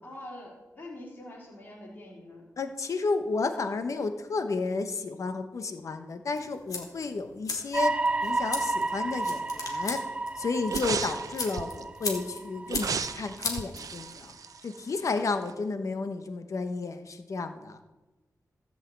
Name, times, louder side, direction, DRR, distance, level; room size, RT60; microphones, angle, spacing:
voice 1, 0.0-2.4, left 1 dB, 30° left, -5 dB, 3.4 m, -44 dB
voice 2, 2.6-7.9 8.2-10.0 10.4-14.3 14.6-17.8, left 3 dB, 60° left, 8 dB, 1.0 m, -32 dB
sound 1, 6.3-14.3, left 4 dB, 75° left, 2.2 m, -39 dB
sound 2, 7.7-13.6 14.1-14.2, right 3 dB, 20° right, 0.4 m, -32 dB
sound 3, 10.7-11.8 12.7-15.1 15.5-15.6, right 6 dB, 70° right, 0.6 m, -34 dB
14.5 x 5.6 x 7.9 m, 1.2 s
wide cardioid pair, 165°, 6 cm